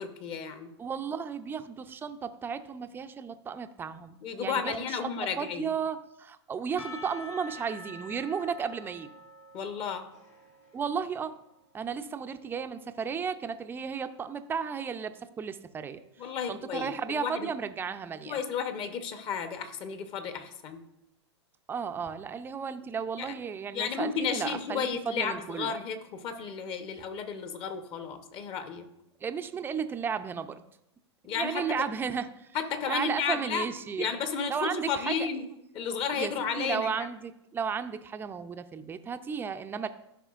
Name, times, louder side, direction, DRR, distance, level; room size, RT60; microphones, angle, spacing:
voice 1, 0.0-0.7 4.2-5.7 9.5-10.0 16.2-17.5 18.3-20.8 23.2-23.3 23.7-28.8 31.2-31.8 32.5-33.7 34.0-35.4 35.7-37.1, left 6 dB, 35° left, 8 dB, 1.0 m, -33 dB
voice 2, 0.8-5.1 5.4-9.1 10.7-11.3 11.7-18.4 21.7-25.7 29.2-30.6 31.3-32.6 32.9-34.1 34.5-35.3 36.1-39.9, right 6 dB, 15° right, 9 dB, 0.5 m, -34 dB
Percussion / Church bell, 6.8-11.8, left 2 dB, 85° left, 1.9 m, -47 dB
14.0 x 5.5 x 2.5 m, 0.82 s
hypercardioid pair, 115°, 15 cm